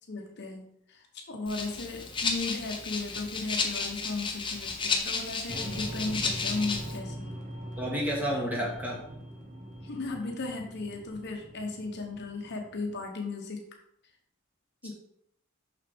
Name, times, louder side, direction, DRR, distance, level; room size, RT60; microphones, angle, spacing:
voice 1, 0.1-7.4 9.8-13.6 14.8-14.9, left 3 dB, 55° left, 2 dB, 0.9 m, -36 dB
Rattle (instrument), 1.5-7.0, left 4 dB, 25° left, 0.8 m, -32 dB
sound 1, 5.5-13.1, equal, 40° right, 1.5 m, -42 dB
voice 2, 7.8-9.0, equal, 10° right, -4 dB, 1.9 m, -30 dB
6.3 x 5.9 x 3.5 m, 0.73 s
head